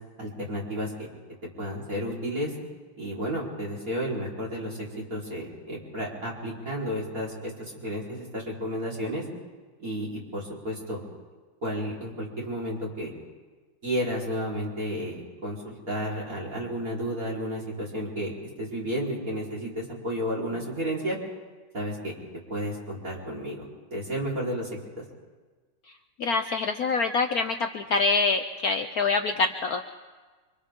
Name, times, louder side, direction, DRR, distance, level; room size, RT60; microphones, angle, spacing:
voice 1, 0.2-0.9 1.6-2.5 3.0-4.8 5.1-9.2 9.8-11.0 11.6-13.1 13.8-18.3 18.6-21.2 21.7-22.1 22.5-24.7 25.0-25.1, equal, 40° right, -5 dB, 4.9 m, -32 dB
voice 2, 26.2-29.9, left 4 dB, 60° left, 6 dB, 1.1 m, -25 dB
29.5 x 25.0 x 3.8 m, 1.3 s
omnidirectional pair, 2.2 m